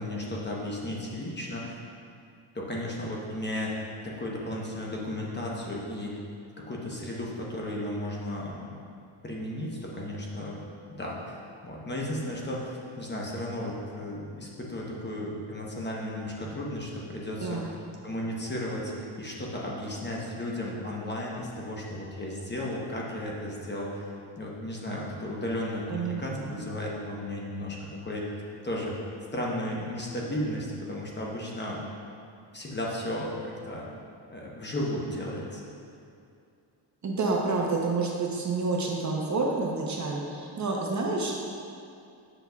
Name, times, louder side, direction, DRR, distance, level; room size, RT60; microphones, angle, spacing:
voice 1, 0.0-1.8 2.5-6.2 6.6-8.8 9.2-10.6 10.9-11.4 11.6-17.7 18.0-27.8 28.0-28.3 28.6-29.0 29.3-31.8 32.5-33.9 34.3-35.6, left 1 dB, 20° left, -3 dB, 0.9 m, -34 dB
voice 2, 17.4-17.7 25.9-26.6 37.0-41.4, right 3 dB, 35° right, -1 dB, 0.7 m, -29 dB
7.8 x 5.9 x 2.3 m, 2.5 s
cardioid pair, 115°, 48 cm